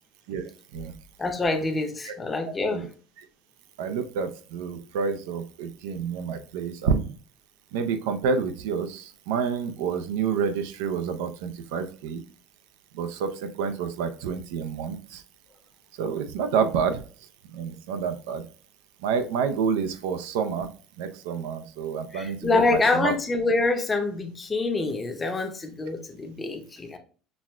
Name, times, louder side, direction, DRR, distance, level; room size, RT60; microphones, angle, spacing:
voice 1, 1.2-2.9 22.1-27.0, left 3 dB, 15° left, 0.6 m, -26 dB
voice 2, 3.8-7.2 7.7-12.2 12.9-15.2 16.0-17.0 17.5-18.4 19.0-20.7 21.0-23.1, right 6 dB, 90° right, 0.5 m, -28 dB
5.9 x 2.4 x 2.2 m
cardioid pair, 140°, 0 cm